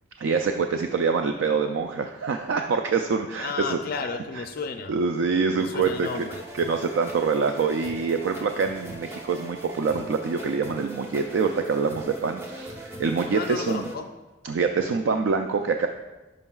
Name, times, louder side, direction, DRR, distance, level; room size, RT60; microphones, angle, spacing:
voice 1, 0.2-3.8 4.3-4.4 4.9-6.3 6.5-13.9 14.4-15.9, right 5 dB, 70° right, 6 dB, 0.3 m, -25 dB
voice 2, 3.4-4.9 5.5-6.4 13.3-14.1, left 4 dB, 50° left, 6 dB, 0.4 m, -32 dB
sound 1, 5.8-13.9, right 1 dB, 15° right, 0.7 m, -40 dB
11.0 x 5.3 x 2.3 m, 1.1 s
head